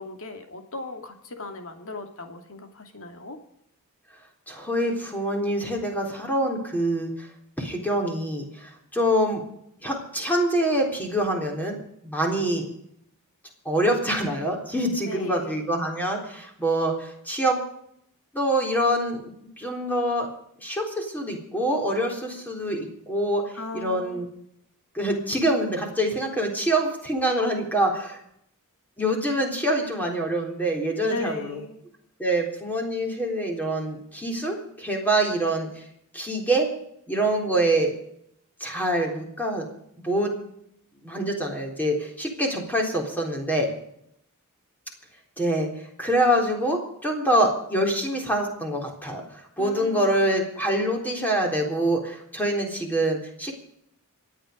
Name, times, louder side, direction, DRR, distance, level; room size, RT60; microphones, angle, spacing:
voice 1, 0.0-3.4 15.0-15.6 23.5-24.3 31.0-31.8 49.6-50.3, left 2 dB, 65° left, 5 dB, 2.6 m, -37 dB
voice 2, 4.5-7.3 7.6-9.4 9.8-11.8 12.0-12.7 13.7-17.6 18.3-20.3 20.6-24.3 24.9-28.2 29.0-31.6 32.2-35.8 36.1-36.7 37.1-37.9 38.6-39.7 40.0-40.3 41.0-43.7 45.4-45.7 46.0-53.5, right 1 dB, 10° left, 1 dB, 3.7 m, -25 dB
26.5 x 9.5 x 5.2 m, 0.73 s
head